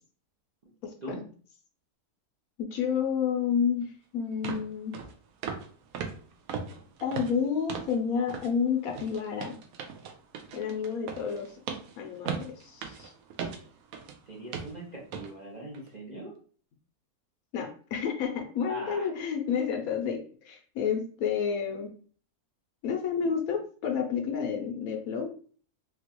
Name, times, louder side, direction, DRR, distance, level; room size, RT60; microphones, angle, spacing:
voice 1, 0.8-1.2 2.7-4.9 7.0-9.6 10.5-11.5 12.0-13.1 17.5-21.9 22.8-25.3, left 7 dB, 70° left, 3 dB, 1.0 m, -30 dB
sound 1, 3.8-3.9 4.4-4.7 4.9-5.1 5.4-5.7 5.9-8.0 8.3-8.5 8.9-14.2 14.5-14.8 15.1-15.3 15.7-15.9, right 6 dB, 70° right, 1.0 m, -38 dB
voice 2, 14.3-16.4 18.7-19.1, right 2 dB, 45° right, -4 dB, 0.5 m, -41 dB
3.7 x 2.4 x 2.9 m, 0.43 s
omnidirectional pair, 1.7 m